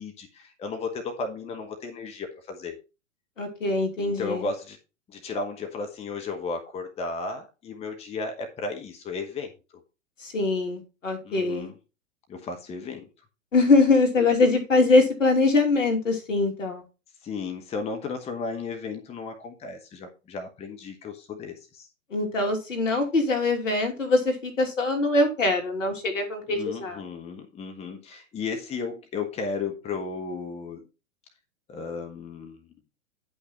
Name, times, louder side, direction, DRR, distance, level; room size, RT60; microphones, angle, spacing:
voice 1, 0.0-2.8 4.0-4.8 5.1-9.5 11.2-11.7 12.3-13.1 17.2-21.9 26.5-30.8 31.7-32.7, left 4 dB, 15° left, 5 dB, 1.1 m, -34 dB
voice 2, 3.4-4.5 10.2-11.7 13.5-16.8 22.1-27.0, left 3 dB, 70° left, 4 dB, 2.9 m, -23 dB
10.0 x 5.6 x 4.2 m, 0.30 s
figure-of-eight pair, 105°, 40 cm